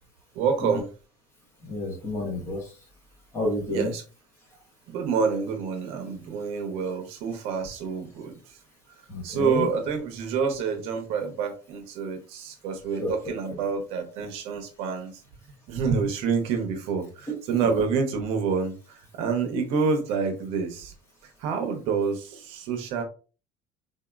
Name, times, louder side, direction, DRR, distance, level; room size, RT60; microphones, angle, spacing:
voice 1, 0.3-0.9 3.7-4.0 4.9-8.6 9.2-15.1 15.7-20.9 21.4-23.0, right 5 dB, 60° right, 5 dB, 0.8 m, -28 dB
voice 2, 1.6-2.6 3.3-3.9 9.1-9.6 13.0-13.1, left 1 dB, 20° left, -1 dB, 1.1 m, -29 dB
3.8 x 2.7 x 2.3 m, 0.35 s
cardioid pair, 175°, 12 cm